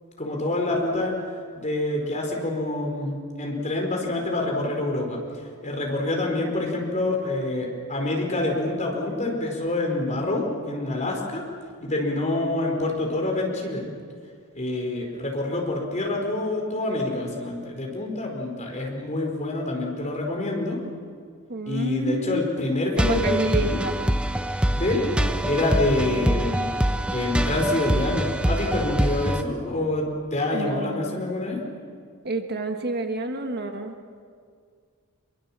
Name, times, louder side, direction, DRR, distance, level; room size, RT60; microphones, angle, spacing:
voice 1, 0.2-1.1 1.5-5.2 5.6-11.4 11.8-13.8 14.5-20.8 21.7-23.8 24.7-25.0 25.4-26.7 27.1-30.0 30.3-31.6, left 2 dB, 35° left, 0 dB, 4.8 m, -26 dB
voice 2, 21.5-24.0 30.5-31.3 32.2-34.0, right 2 dB, 50° right, 5 dB, 1.5 m, -29 dB
sound 1, 23.0-29.4, right 1 dB, 5° right, 0.7 m, -24 dB
25.5 x 23.0 x 7.5 m, 2.1 s
head